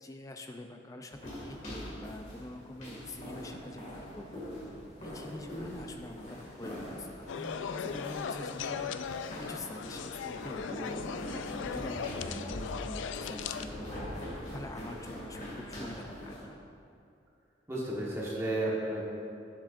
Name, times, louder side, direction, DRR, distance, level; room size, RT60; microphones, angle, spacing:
voice 1, 0.0-4.5 5.0-8.9 9.5-11.1 11.6-14.1 14.5-16.6, left 1 dB, 20° left, 5 dB, 0.4 m, -45 dB
sound 1, 1.1-16.4, equal, 40° left, 2.0 m, -43 dB
sound 2, 7.3-13.7, left 6 dB, 85° left, 0.3 m, -38 dB
voice 2, 17.7-19.1, right 1 dB, 15° right, -6 dB, 1.3 m, -32 dB
10.5 x 7.4 x 2.5 m, 2.6 s
head